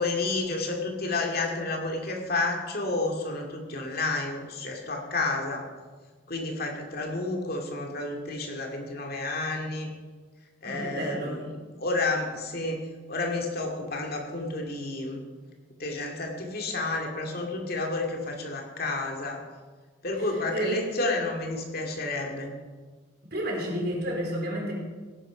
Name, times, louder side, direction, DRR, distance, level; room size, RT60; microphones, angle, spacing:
voice 1, 0.0-5.7 6.3-9.9 10.6-12.8 13.1-15.2 15.8-19.4 20.0-22.5, left 2 dB, 50° left, 2 dB, 2.3 m, -30 dB
voice 2, 10.6-11.4 20.2-20.8 23.3-24.7, right 1 dB, 55° right, -2 dB, 4.4 m, -31 dB
17.0 x 11.0 x 5.0 m, 1.4 s
head